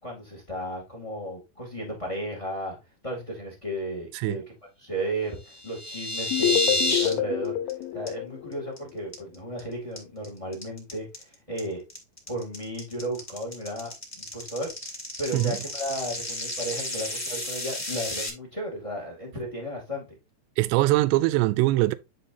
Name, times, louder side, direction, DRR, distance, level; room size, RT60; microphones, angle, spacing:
voice 1, 0.0-2.8 3.0-4.4 4.8-7.6 7.9-11.8 12.3-14.7 15.2-20.1, right 1 dB, 30° left, 0.6 m, -34 dB
sound 1, 5.5-7.1 7.4-7.7 8.1-8.2 8.5-8.8 9.1-9.6 10.0-18.3, left 1 dB, 10° left, 1.0 m, -31 dB
sound 2, 6.3-9.3, left 13 dB, 90° left, 3.1 m, -28 dB
voice 2, 20.6-22.0, right 19 dB, 80° right, 2.6 m, -22 dB
10.5 x 4.3 x 2.7 m
omnidirectional pair, 5.3 m